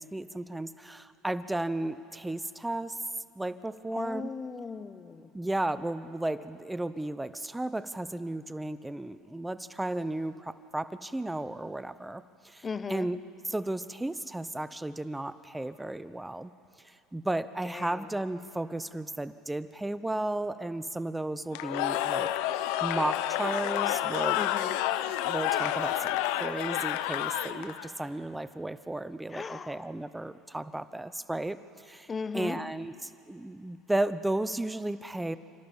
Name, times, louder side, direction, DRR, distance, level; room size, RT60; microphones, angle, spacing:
voice 1, 0.0-3.0 3.4-4.3 5.3-13.2 13.5-16.5 17.1-24.4 25.2-31.6 31.8-35.4, right 1 dB, 10° right, 14 dB, 0.7 m, -34 dB
voice 2, 3.9-5.3 12.6-13.1 17.6-18.2 24.3-24.8 29.3-29.9 32.1-32.6, left 5 dB, 30° left, 13 dB, 0.9 m, -37 dB
Cheering / Crowd, 21.5-27.9, left 13 dB, 75° left, 0.7 m, -29 dB
28.0 x 13.5 x 7.1 m, 2.5 s
supercardioid pair, 85°, 0 cm